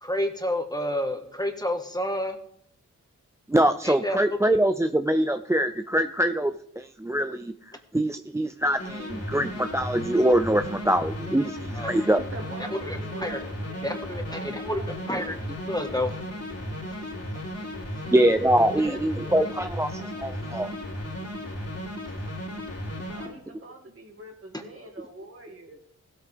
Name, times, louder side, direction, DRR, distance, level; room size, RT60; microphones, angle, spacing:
voice 1, 0.0-2.4 3.8-4.2 11.7-12.1 12.9-13.4 13.8-14.8 15.1-15.4 15.7-16.1 18.0-18.1 18.8-19.0 24.5-24.6, left 1 dB, 10° left, 5 dB, 1.6 m, -29 dB
voice 2, 3.5-12.2 18.1-20.7, right 1 dB, 10° right, 8 dB, 0.5 m, -24 dB
sound 1, 8.8-23.3, equal, 45° left, 3.7 m, -35 dB
voice 3, 12.1-13.4 13.6-15.0 23.0-25.8, right 1 dB, 40° right, 2 dB, 2.6 m, -44 dB
17.0 x 8.4 x 3.5 m, 0.69 s
cardioid pair, 60°, 32 cm